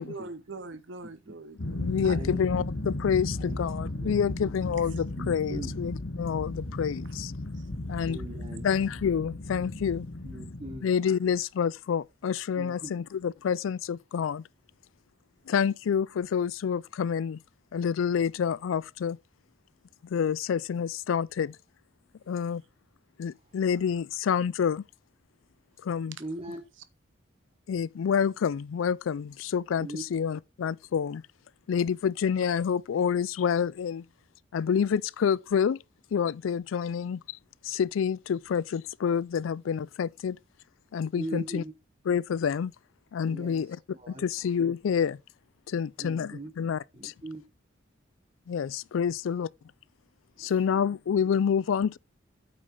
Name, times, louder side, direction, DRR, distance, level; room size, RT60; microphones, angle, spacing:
voice 1, 0.0-2.4, right 3 dB, 70° right, 0.8 m, -42 dB
voice 2, 1.0-1.3 2.1-3.0 3.4-3.6 3.9-4.3 5.2-5.9 8.0-8.7 10.2-10.9 12.5-12.9 22.2-22.3 23.5-23.6 26.2-26.6 29.8-30.0 41.1-41.7 43.3-44.2 46.0-46.5 46.9-47.4 50.4-50.6, right 1 dB, 30° right, 0.9 m, -41 dB
sound 1, 1.6-10.8, left 2 dB, 70° left, 1.1 m, -35 dB
voice 3, 1.8-7.3 7.9-8.2 8.6-10.1 10.8-14.4 15.5-17.4 17.7-19.2 20.0-21.6 22.3-22.6 23.2-24.8 25.8-26.2 27.7-31.2 31.7-34.0 34.5-35.8 36.1-37.4 37.6-40.4 40.9-41.6 42.1-42.7 43.1-43.8 44.1-45.2 45.7-47.1 48.5-49.5 50.4-52.0, left 7 dB, 85° left, 0.3 m, -28 dB
sound 2, 7.7-10.2, left 1 dB, 15° left, 0.8 m, -46 dB
8.5 x 5.4 x 5.2 m
head